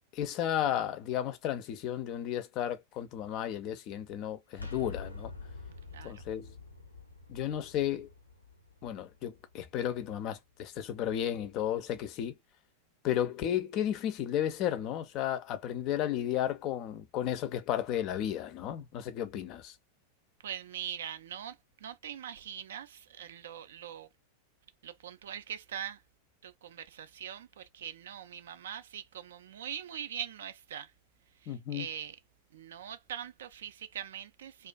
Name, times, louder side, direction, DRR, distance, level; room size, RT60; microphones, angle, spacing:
voice 1, 0.1-5.3 6.0-6.5 7.3-8.1 8.8-12.3 13.0-19.7 31.5-31.9, left 10 dB, 40° left, 0.4 m, -33 dB
sound 1, 4.5-10.2, left 3 dB, 85° left, 0.5 m, -46 dB
voice 2, 5.9-6.2 20.4-21.6 21.8-24.1 24.8-26.0 26.4-30.9 31.4-32.2 32.5-34.7, right 9 dB, 60° right, 0.3 m, -42 dB
2.4 x 2.3 x 2.2 m
figure-of-eight pair, 90°, 0 cm